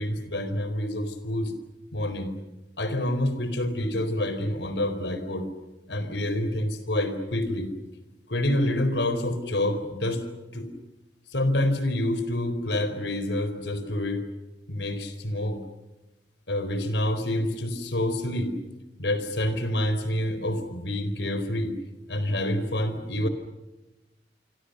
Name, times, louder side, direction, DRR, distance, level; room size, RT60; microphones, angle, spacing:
voice 1, 0.0-1.5 1.9-2.4 2.8-5.5 5.9-7.7 8.3-10.2 10.5-10.7 11.3-14.2 14.7-15.6 16.5-18.5 19.0-21.7 22.1-23.3, left 1 dB, 70° left, 10 dB, 4.2 m, -27 dB
28.0 x 25.5 x 6.7 m, 1.0 s
head